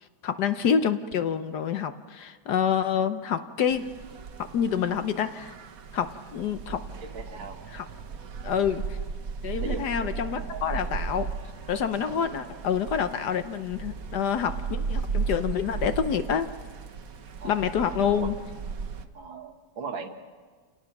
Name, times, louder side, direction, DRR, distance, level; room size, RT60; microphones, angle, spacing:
voice 1, 0.2-3.9 4.5-5.5 5.9-6.8 7.7-7.8 8.4-9.0 9.4-11.3 11.7-16.5 17.4-18.3, left 7 dB, 65° left, 10 dB, 1.3 m, -27 dB
sound 1, 3.7-19.1, right 5 dB, 55° right, 1.3 m, -36 dB
voice 2, 7.0-7.6 9.6-11.0 17.4-17.6 18.2-18.3 19.1-20.1, right 4 dB, 80° right, 4 dB, 2.4 m, -39 dB
29.0 x 18.0 x 6.0 m, 1.5 s
omnidirectional pair, 2.1 m